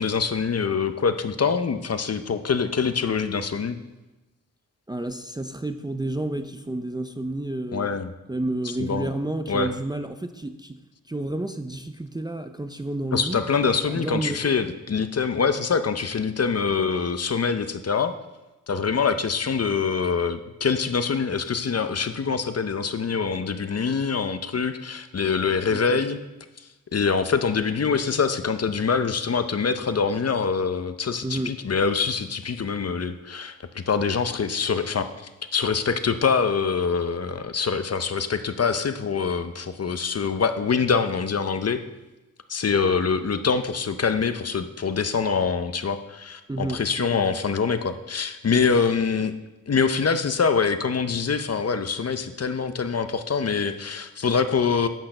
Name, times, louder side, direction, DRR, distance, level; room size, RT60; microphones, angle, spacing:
voice 1, 0.0-3.8 7.7-8.1 8.8-9.1 9.5-9.7 13.1-18.1 18.7-26.2 26.9-35.1 35.5-41.8 42.5-49.3 49.7-54.9, left 5 dB, 45° left, 10 dB, 0.6 m, -24 dB
voice 2, 4.9-7.9 8.3-10.8 11.1-13.4 13.9-14.5 25.7-26.0 31.2-31.6 46.5-47.4 49.1-49.3, right 2 dB, 10° right, 7 dB, 0.4 m, -30 dB
10.5 x 6.4 x 6.5 m, 1.0 s
wide cardioid pair, 145°, 34 cm